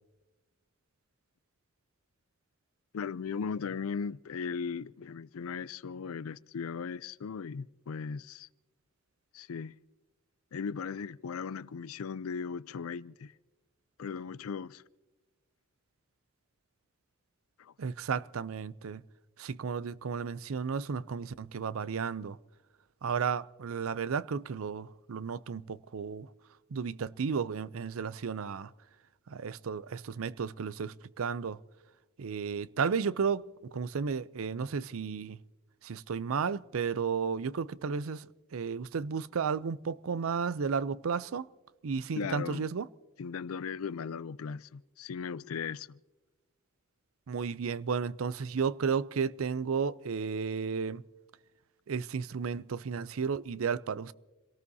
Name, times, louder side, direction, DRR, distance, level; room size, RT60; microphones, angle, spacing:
voice 1, 2.9-8.5 9.3-9.7 10.5-13.3 14.0-14.8 17.6-17.7 42.2-42.7 43.2-46.0, left 6 dB, 85° left, 0.4 m, -37 dB
voice 2, 17.8-19.0 19.4-22.4 23.0-26.3 26.7-28.7 29.3-31.6 32.2-33.4 33.7-35.4 35.8-41.5 41.8-42.9 47.3-51.0 51.9-54.1, right 6 dB, 75° right, 0.5 m, -33 dB
28.0 x 18.5 x 2.8 m
head